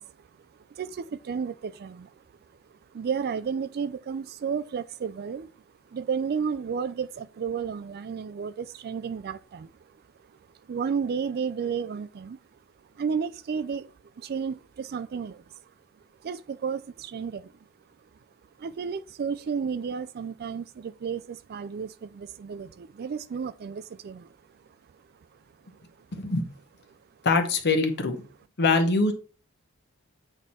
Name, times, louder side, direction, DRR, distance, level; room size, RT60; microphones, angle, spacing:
voice 1, 0.0-10.0 10.2-10.4 10.7-12.6 12.9-13.9 14.2-15.7 16.2-17.5 18.6-25.0 26.9-27.0, right 6 dB, 45° right, 0.3 m, -33 dB
voice 2, 26.1-26.4 27.2-28.2 28.6-29.1, left 3 dB, 50° left, 0.9 m, -23 dB
8.0 x 4.4 x 4.2 m
head